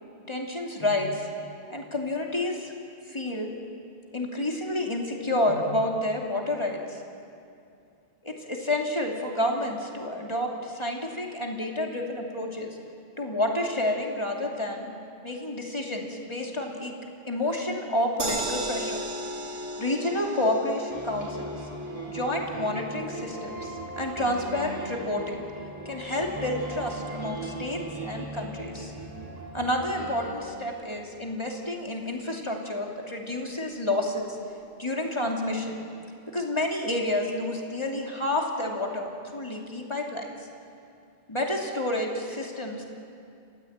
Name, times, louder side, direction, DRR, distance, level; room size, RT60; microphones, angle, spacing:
voice 1, 0.3-1.3 1.7-2.7 3.1-3.5 4.1-7.0 8.2-12.8 13.2-14.9 15.2-16.9 17.3-19.0 19.7-21.6 22.1-25.5 25.8-28.9 29.5-34.4 34.8-35.8 36.3-40.3 41.3-42.9, left 1 dB, 25° left, 0 dB, 2.9 m, -29 dB
sound 1, 18.2-30.4 30.8-30.9 31.2-31.3, equal, 80° right, 3.0 m, -39 dB
sound 2, 20.9-30.3, right 2 dB, 30° right, 4.5 m, -38 dB
30.0 x 15.5 x 8.9 m, 2.5 s
omnidirectional pair, 1.1 m